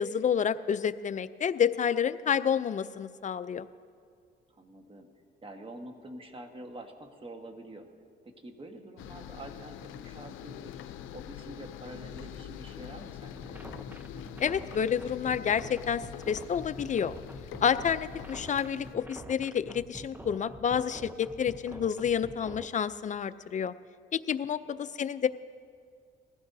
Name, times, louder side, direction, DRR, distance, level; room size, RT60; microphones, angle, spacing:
voice 1, 0.0-3.7 14.4-17.2 17.6-23.7 24.1-25.3, left 8 dB, 40° left, 13 dB, 0.5 m, -29 dB
voice 2, 4.5-5.1 5.4-7.9 8.2-10.7 11.1-13.6 24.6-24.9, right 1 dB, 25° right, 5 dB, 1.4 m, -46 dB
sound 1, 9.0-19.0, left 10 dB, 90° left, 0.5 m, -44 dB
sound 2, 13.4-22.7, right 1 dB, 10° right, 0.6 m, -46 dB
20.0 x 15.5 x 2.7 m, 2.2 s
cardioid pair, 90°, 20 cm